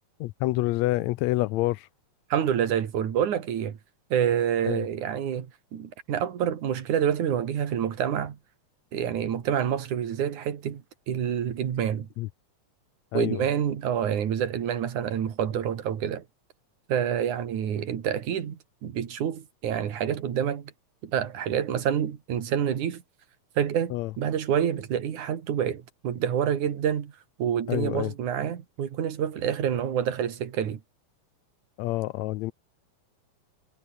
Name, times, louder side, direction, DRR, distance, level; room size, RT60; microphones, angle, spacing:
voice 1, 0.2-1.9 4.6-4.9 12.2-12.3 13.1-13.5 23.9-24.1 27.7-28.1 31.8-32.5, left 18 dB, 80° left, 1.8 m, -27 dB
voice 2, 2.3-3.8 4.1-8.4 8.9-12.1 13.1-16.2 16.9-20.7 21.0-23.0 23.6-27.1 27.4-30.8, right 9 dB, 85° right, 3.6 m, -27 dB
omnidirectional pair, 3.4 m